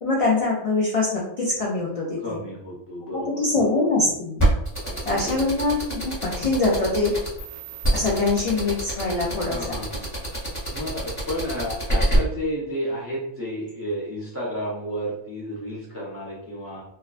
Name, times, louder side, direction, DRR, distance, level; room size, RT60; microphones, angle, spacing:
voice 1, 0.0-2.2 3.1-4.4 5.1-7.1 7.9-9.8, left 3 dB, 65° left, -4 dB, 0.3 m, -23 dB
voice 2, 2.2-3.9 4.8-5.4 9.5-10.2 10.7-16.8, equal, 15° right, -6 dB, 0.5 m, -32 dB
sound 1, 4.4-12.2, right 1 dB, 15° left, 0.7 m, -25 dB
2.7 x 2.1 x 2.4 m, 0.74 s
omnidirectional pair, 1.3 m